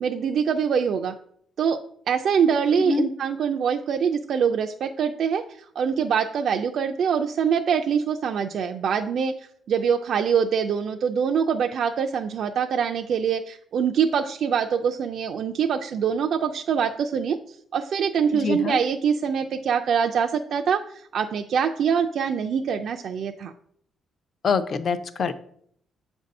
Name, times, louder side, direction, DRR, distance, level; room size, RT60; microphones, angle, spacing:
voice 1, 0.0-1.1 1.6-1.8 2.1-9.3 9.7-17.4 17.7-23.5, right 7 dB, 55° right, 3 dB, 0.3 m, -24 dB
voice 2, 2.8-3.1 18.3-18.8 24.4-25.3, left 5 dB, 40° left, 12 dB, 0.4 m, -25 dB
7.5 x 2.6 x 5.2 m, 0.66 s
cardioid pair, 150°, 0 cm